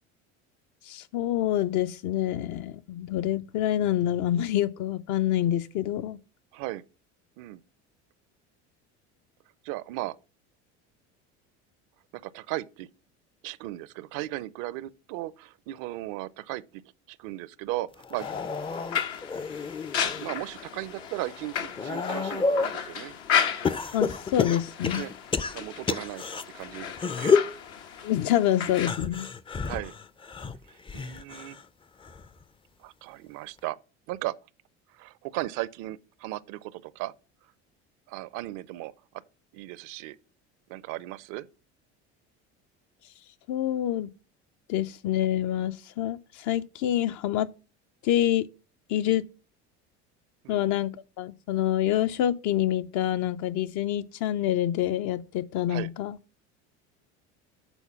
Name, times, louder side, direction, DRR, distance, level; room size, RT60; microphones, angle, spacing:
voice 1, 0.9-6.2 23.9-25.0 28.0-29.3 43.5-44.1 44.7-47.5 48.0-48.5 48.9-49.3 50.5-56.2, left 12 dB, 60° left, 0.6 m, -27 dB
voice 2, 6.5-6.8 7.4-7.6 9.6-10.2 12.1-12.9 13.4-16.8 17.1-18.3 20.2-23.1 24.9-25.1 25.5-26.2 26.5-27.4 29.7-29.9 30.7-31.6 32.8-33.8 34.1-34.4 34.9-37.1 38.1-38.9 39.5-40.2 40.7-41.5 50.4-50.6 55.7-55.9, right 17 dB, 65° right, 0.5 m, -36 dB
sound 1, 18.0-20.3 20.8-22.8 23.6-26.4 26.9-27.6 28.8-31.6 32.0-32.4 33.6-33.7, left 5 dB, 15° left, 0.4 m, -30 dB
sound 2, 18.2-28.9, left 8 dB, 80° left, 1.1 m, -34 dB
7.1 x 4.0 x 5.7 m
hypercardioid pair, 80°, 34 cm